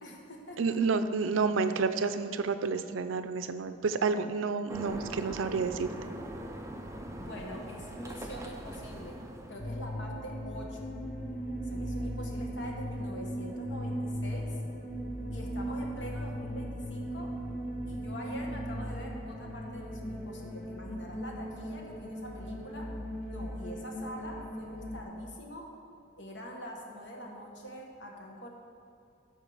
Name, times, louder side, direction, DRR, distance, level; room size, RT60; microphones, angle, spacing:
voice 1, 0.0-0.8 7.2-9.2 9.5-10.9 11.6-14.6 15.3-17.3 17.9-22.9 23.3-25.7 26.2-28.5, equal, 65° left, 0 dB, 1.4 m, -44 dB
voice 2, 0.6-5.9, right 4 dB, 85° right, 10 dB, 0.5 m, -30 dB
sound 1, 4.7-9.9, right 1 dB, 15° right, 0.5 m, -42 dB
sound 2, 9.6-25.0, equal, 40° left, 1.3 m, -37 dB
13.0 x 4.7 x 4.9 m, 2.4 s
head